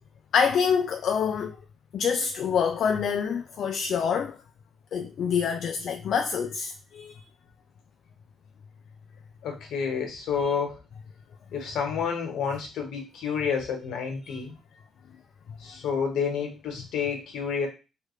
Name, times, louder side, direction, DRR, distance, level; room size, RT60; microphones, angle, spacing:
voice 1, 0.3-1.6 1.9-4.4 4.9-7.1 10.4-10.5 14.2-14.4, left 6 dB, 65° left, 0.3 m, -26 dB
voice 2, 9.4-10.8 11.5-14.5 15.6-17.7, left 6 dB, 80° left, 1.0 m, -29 dB
3.2 x 2.4 x 3.1 m
cardioid pair, 90°, 0 cm